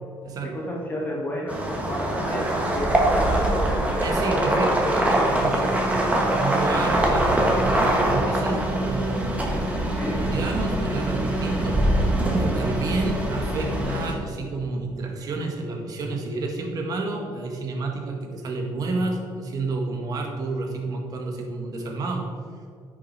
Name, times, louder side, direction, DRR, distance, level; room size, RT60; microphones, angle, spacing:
voice 1, 0.4-5.0 9.9-10.3, left 1 dB, 20° left, -3 dB, 2.1 m, -31 dB
sound 1, 1.5-14.1, right 1 dB, 15° right, 1.7 m, -23 dB
voice 2, 4.0-22.3, right 3 dB, 50° right, 2 dB, 1.7 m, -30 dB
9.8 x 6.4 x 4.3 m, 2.3 s
cardioid pair, 115°, 8 cm